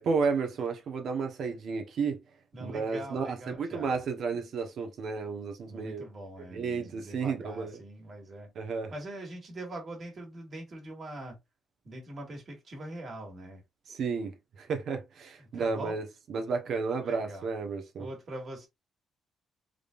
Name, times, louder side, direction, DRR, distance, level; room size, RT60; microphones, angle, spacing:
voice 1, 0.0-2.2 2.6-6.0 6.5-7.8 8.6-8.9 13.9-14.3 14.6-16.0 16.3-18.1, right 5 dB, 65° right, 1.1 m, -32 dB
voice 2, 2.5-4.0 5.7-11.4 11.8-13.6 15.4-16.0 17.0-17.5 18.0-18.7, right 1 dB, 50° right, 2.1 m, -43 dB
3.7 x 3.5 x 2.5 m
cardioid pair, 90°, 0 cm